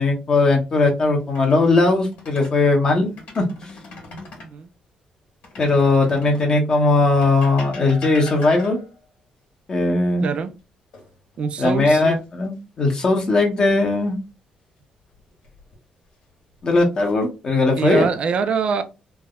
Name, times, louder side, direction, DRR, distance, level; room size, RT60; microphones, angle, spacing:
voice 1, 0.0-3.1 3.4-3.5 5.6-8.8 9.7-10.3 11.6-14.2 16.6-18.1, left 3 dB, 35° left, 0.8 m, -18 dB
sound 1, 1.2-2.6 3.0-4.6 5.4-6.6 7.2-9.0 10.9-11.6 12.0-12.2 15.2-15.8 16.5-17.1, left 3 dB, 85° left, 1.6 m, -41 dB
voice 2, 10.2-10.5 11.4-12.0 17.8-18.8, right 6 dB, 50° right, 0.4 m, -23 dB
3.3 x 2.1 x 2.3 m
cardioid pair, 150°, 2 cm